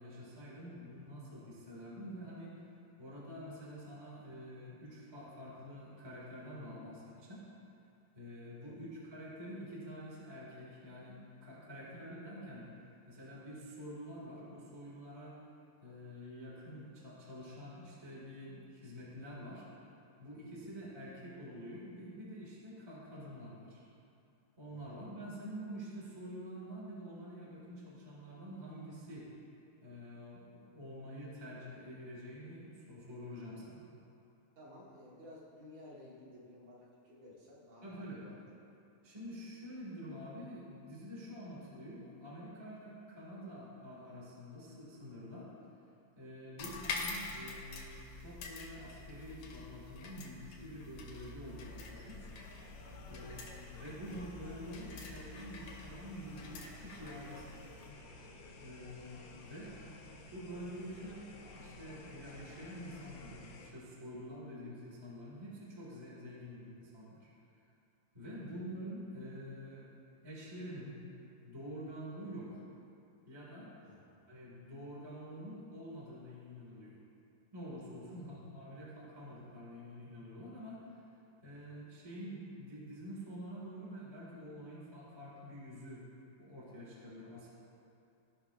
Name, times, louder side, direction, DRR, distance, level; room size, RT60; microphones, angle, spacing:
voice 1, 0.0-2.6 3.0-7.5 8.1-12.7 13.0-15.4 15.8-19.6 20.2-23.8 24.6-29.3 29.8-30.4 30.7-33.8 37.8-38.2 39.0-45.5 46.1-52.2 53.1-57.7 58.6-59.8 60.3-61.3 61.5-67.3 68.1-69.9 70.2-71.0 71.4-72.6 73.2-73.7 74.3-77.0 77.5-80.9 81.4-86.0 86.4-87.5, equal, 30° right, -6 dB, 0.4 m, -47 dB
voice 2, 24.7-25.0 34.6-38.3 46.6-46.8 53.1-53.3 68.4-68.6 73.8-74.0 78.1-78.3 81.4-81.7, left 1 dB, 60° right, -7 dB, 2.4 m, -55 dB
sound 1, 46.6-57.9, left 3 dB, 70° left, 1.7 m, -46 dB
sound 2, 51.4-63.7, left 2 dB, 85° left, 2.6 m, -53 dB
15.5 x 5.5 x 2.4 m, 2.6 s
omnidirectional pair, 3.9 m